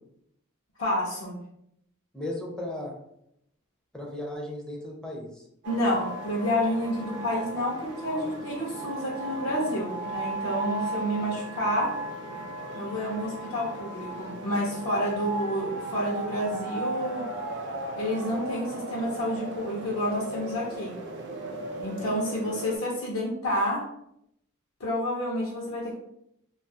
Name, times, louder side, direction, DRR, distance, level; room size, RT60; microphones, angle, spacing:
voice 1, 0.8-1.4 5.7-11.9 12.7-17.3 18.0-21.0 21.8-23.8 24.8-26.0, equal, 70° left, -3 dB, 0.6 m, -29 dB
voice 2, 2.1-2.9 3.9-5.4, left 1 dB, 5° left, -1 dB, 0.4 m, -35 dB
sound 1, 5.6-22.8, right 2 dB, 55° right, 0.4 m, -36 dB
2.3 x 2.3 x 2.7 m, 0.76 s
head